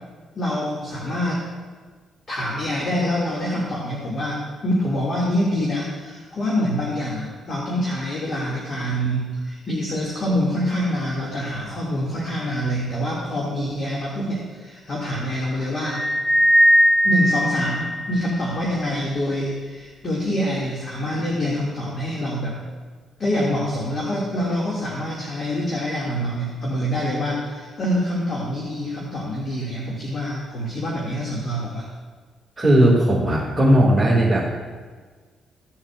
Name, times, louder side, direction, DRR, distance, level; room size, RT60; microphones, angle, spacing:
voice 1, 0.4-1.4 2.3-16.0 17.0-22.6 23.2-31.8, equal, 45° left, -4 dB, 2.1 m, -25 dB
sound 1, 15.9-18.6, equal, 20° left, 0.8 m, -19 dB
voice 2, 32.6-34.5, right 1 dB, 15° right, -8 dB, 2.1 m, -17 dB
15.5 x 7.1 x 2.4 m, 1.5 s
cardioid pair, 90°, 0 cm